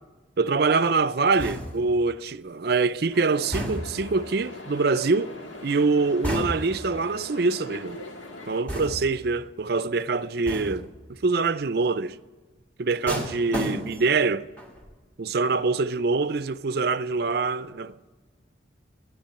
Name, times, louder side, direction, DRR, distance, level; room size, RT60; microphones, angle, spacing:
voice 1, 0.4-5.3 5.6-8.0 8.5-12.2 12.8-14.5 15.2-18.1, right 4 dB, 55° right, 0.5 m, -24 dB
sound 1, 1.4-2.0 3.5-4.1 6.2-6.9 8.7-9.2 10.5-10.9 13.1-14.2 14.6-14.9, equal, 10° left, 1.9 m, -32 dB
sound 2, 3.1-8.6, left 1 dB, 85° left, 1.9 m, -41 dB
14.5 x 10.5 x 7.7 m
head